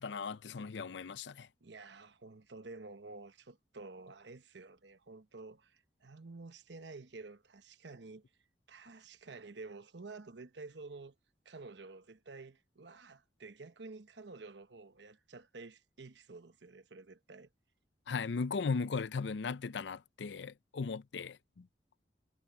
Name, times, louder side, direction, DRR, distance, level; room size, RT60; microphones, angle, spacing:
voice 1, 0.0-1.5 18.1-21.7, left 4 dB, 80° left, 0.5 m, -37 dB
voice 2, 1.6-8.3 8.7-11.1 11.4-17.5, right 3 dB, 80° right, 1.1 m, -50 dB
head